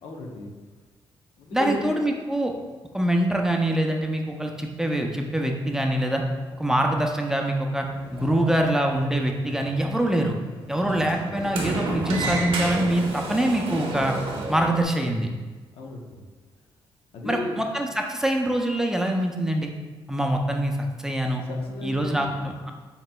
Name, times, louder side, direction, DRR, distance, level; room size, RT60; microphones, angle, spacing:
voice 1, 0.0-0.5 1.4-1.9 15.7-16.2 17.1-17.6 21.5-22.2, left 1 dB, 80° left, 0 dB, 0.7 m, -34 dB
voice 2, 1.5-2.5 2.9-6.2 6.6-7.9 8.1-10.4 10.7-14.2 14.5-15.3 17.2-19.7 20.1-20.8 21.0-21.4 21.8-22.7, right 1 dB, 5° right, 2 dB, 0.4 m, -24 dB
Sliding door, 7.8-14.8, right 2 dB, 90° right, 0.9 m, -32 dB
7.3 x 2.9 x 2.2 m, 1.3 s
cardioid pair, 100°, 9 cm